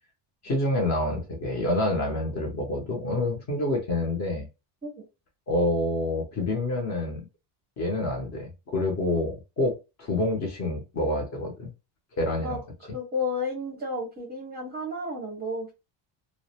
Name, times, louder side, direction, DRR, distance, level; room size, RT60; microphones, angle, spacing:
voice 1, 0.4-4.5 5.5-7.2 7.8-11.7 12.2-12.6, left 1 dB, 35° left, 2 dB, 0.7 m, -27 dB
voice 2, 12.9-15.7, left 2 dB, 20° right, 0 dB, 0.6 m, -32 dB
2.4 x 2.0 x 2.7 m, 0.27 s
cardioid pair, 160°, 50 cm